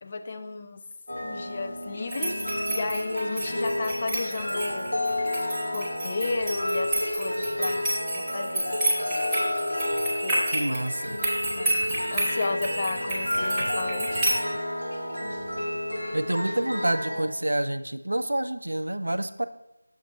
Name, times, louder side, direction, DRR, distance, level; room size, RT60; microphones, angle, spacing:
voice 1, 0.0-0.8 1.2-2.4 2.7-5.0 5.3-8.8 10.2-10.5 11.6-11.9 12.1-14.2, left 3 dB, 25° left, 6 dB, 0.3 m, -33 dB
sound 1, 1.1-17.2, left 1 dB, 90° left, 1.6 m, -31 dB
sound 2, 2.1-14.4, right 1 dB, 10° right, 0.9 m, -30 dB
voice 2, 10.5-11.2 16.1-19.4, right 1 dB, 70° right, 11 dB, 0.4 m, -28 dB
6.6 x 4.0 x 4.3 m, 0.88 s
figure-of-eight pair, 165°, 0 cm